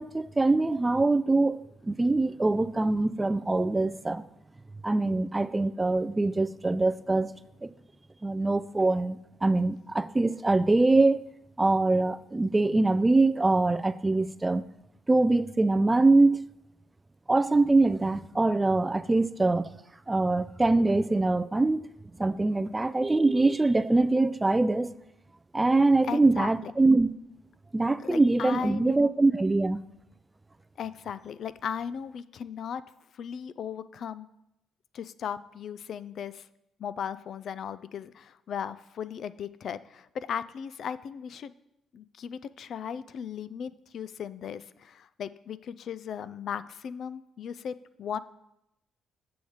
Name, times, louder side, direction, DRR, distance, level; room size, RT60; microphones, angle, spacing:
voice 1, 0.0-4.2 4.8-7.3 7.6-7.7 8.2-11.2 11.6-14.6 15.1-16.5 17.3-19.7 20.1-21.8 22.2-24.9 25.5-27.1 27.7-29.8, right 2 dB, 15° right, 14 dB, 0.3 m, -23 dB
voice 2, 26.0-26.7 28.0-29.1 30.8-32.8 33.1-34.3 34.9-36.5 36.8-41.5 41.9-48.2, left 8 dB, 65° left, 15 dB, 0.3 m, -37 dB
6.9 x 6.2 x 5.0 m, 0.85 s
cardioid pair, 90°, 0 cm